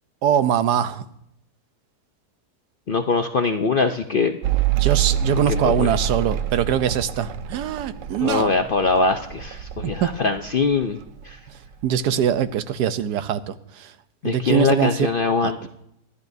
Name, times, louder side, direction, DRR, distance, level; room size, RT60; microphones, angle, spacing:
voice 1, 0.2-1.0 4.7-8.5 9.8-10.1 11.8-13.9 14.2-15.1 15.4-15.7, right 9 dB, 90° right, 12 dB, 1.3 m, -22 dB
voice 2, 2.9-4.3 5.6-5.9 8.2-11.0 11.2-11.4 14.2-15.7, left 4 dB, 60° left, 6 dB, 0.5 m, -22 dB
Mechanical fan, 4.4-11.3 11.6-12.4, right 9 dB, 60° right, 0.9 m, -26 dB
25.5 x 11.5 x 2.7 m, 0.77 s
omnidirectional pair, 1.7 m